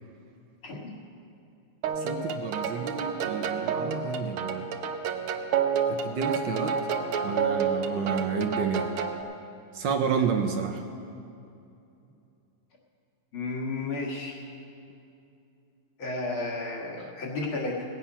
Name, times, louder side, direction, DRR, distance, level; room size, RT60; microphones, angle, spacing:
sound 1, 1.8-9.2, right 6 dB, 90° right, 1.7 m, -29 dB
voice 1, 1.9-4.7 5.9-6.8 7.2-8.9 9.7-10.8 17.0-17.1, right 6 dB, 70° right, 5 dB, 1.3 m, -30 dB
voice 2, 13.3-14.4 16.0-17.8, left 3 dB, 70° left, -2 dB, 2.6 m, -32 dB
18.0 x 8.4 x 5.6 m, 2.6 s
omnidirectional pair, 2.4 m